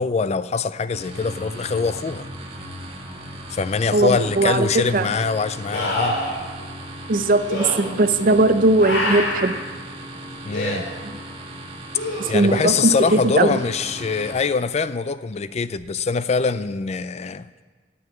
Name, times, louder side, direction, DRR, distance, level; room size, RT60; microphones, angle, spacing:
voice 1, 0.0-2.3 3.5-6.2 10.4-10.9 12.3-17.5, left 5 dB, 35° left, 15 dB, 0.4 m, -23 dB
sound 1, 0.9-14.3, right 1 dB, 35° right, 1.5 m, -37 dB
voice 2, 3.9-5.1 7.1-9.5 11.0-11.1 12.2-13.6, right 2 dB, 50° right, 10 dB, 0.6 m, -19 dB
sound 2, 4.1-4.2 5.7-6.4 7.5-7.7 8.8-9.5 10.5-10.8 11.9-12.6 15.8-15.9, left 1 dB, 80° left, 3.5 m, -26 dB
9.4 x 7.2 x 8.4 m, 1.4 s
head